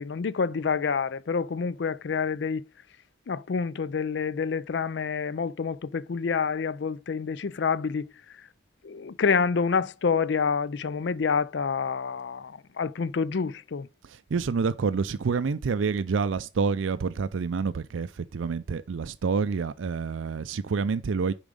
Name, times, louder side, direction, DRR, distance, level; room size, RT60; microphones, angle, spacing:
voice 1, 0.0-2.6 3.3-8.1 8.8-13.9, left 5 dB, 70° left, 0.4 m, -28 dB
voice 2, 14.0-21.3, right 5 dB, 90° right, 0.4 m, -28 dB
7.1 x 5.1 x 5.0 m
head